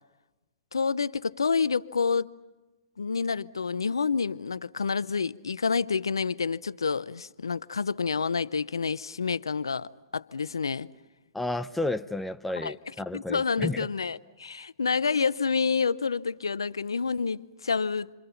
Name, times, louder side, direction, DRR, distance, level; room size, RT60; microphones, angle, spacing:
voice 1, 0.7-2.3 3.0-10.9 12.6-12.7 13.1-18.1, left 5 dB, 85° left, 0.7 m, -28 dB
voice 2, 11.3-13.9, left 2 dB, 5° left, 0.8 m, -32 dB
28.5 x 26.0 x 5.7 m
hypercardioid pair, 120°, 2 cm